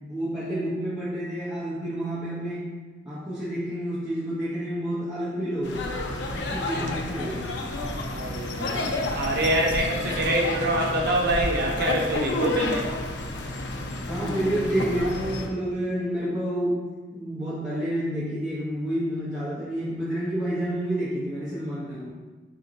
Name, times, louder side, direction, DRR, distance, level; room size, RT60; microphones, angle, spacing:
voice 1, 0.0-2.8 3.1-5.8 6.3-7.5 14.1-16.8 17.1-22.1, right 1 dB, 5° right, -11 dB, 0.7 m, -29 dB
sound 1, 5.6-15.5, left 1 dB, 70° left, 0.5 m, -30 dB
voice 2, 6.6-7.4 8.1-12.9, right 1 dB, 60° right, -1 dB, 0.7 m, -26 dB
4.3 x 2.5 x 3.9 m, 1.3 s
head